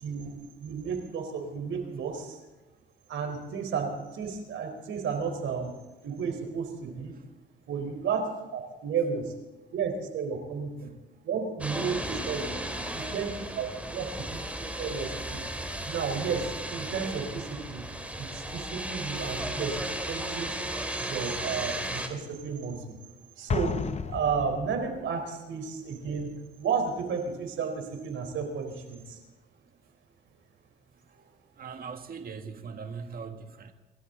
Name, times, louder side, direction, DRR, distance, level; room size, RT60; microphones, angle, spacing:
voice 1, 0.0-2.4 3.1-5.7 6.0-7.1 7.7-8.2 8.5-9.2 9.7-10.9 11.2-12.6 12.9-14.1 14.8-15.4 15.9-17.8 18.2-20.6 21.0-23.0 23.4-23.8 24.0-29.2, right 6 dB, 75° right, 5 dB, 4.1 m, -32 dB
sound 1, 11.6-22.1, right 1 dB, 5° right, 2.7 m, -35 dB
Explosion, 23.5-25.1, left 6 dB, 35° left, 0.9 m, -32 dB
voice 2, 31.1-33.7, right 5 dB, 45° right, 6 dB, 1.7 m, -42 dB
28.0 x 13.0 x 3.9 m, 1.2 s
cardioid pair, 90°, 20 cm